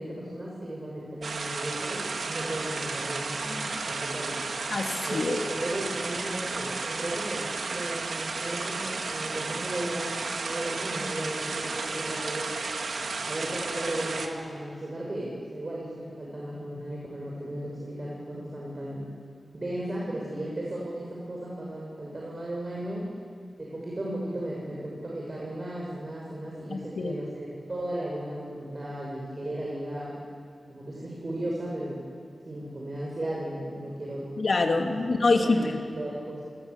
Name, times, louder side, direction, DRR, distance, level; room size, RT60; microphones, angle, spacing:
voice 1, 0.0-4.4 5.0-10.2 10.4-12.5 13.2-19.1 19.5-23.1 23.6-30.2 30.7-32.0 32.4-34.3 35.0-36.4, right 1 dB, 40° right, -4 dB, 6.6 m, -35 dB
sound 1, 1.2-14.3, right 3 dB, 85° right, 2.2 m, -33 dB
voice 2, 4.7-5.4 26.7-27.2 34.4-35.6, left 3 dB, 60° left, 3 dB, 2.7 m, -25 dB
27.5 x 21.0 x 8.4 m, 2.1 s
wide cardioid pair, 105°, 0 cm